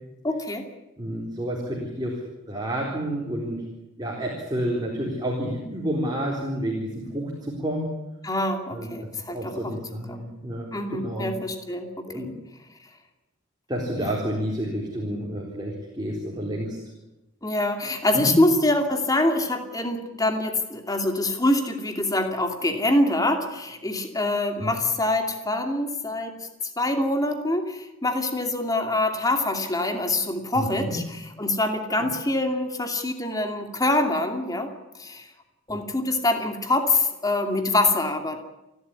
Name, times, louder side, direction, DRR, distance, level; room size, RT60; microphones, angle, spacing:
voice 1, 0.2-0.7 8.2-9.7 10.1-10.2 10.7-12.3 17.4-26.5 26.8-34.7 35.0-35.3 35.7-38.4, left 2 dB, 20° left, 5 dB, 2.6 m, -25 dB
voice 2, 1.0-2.2 2.5-3.7 4.0-7.9 8.7-8.9 9.3-11.3 12.1-12.3 13.7-16.8 18.1-18.3 24.6-24.8 30.5-30.9 32.0-32.1, right 1 dB, 20° right, -2 dB, 4.0 m, -30 dB
29.0 x 12.5 x 9.8 m, 0.98 s
head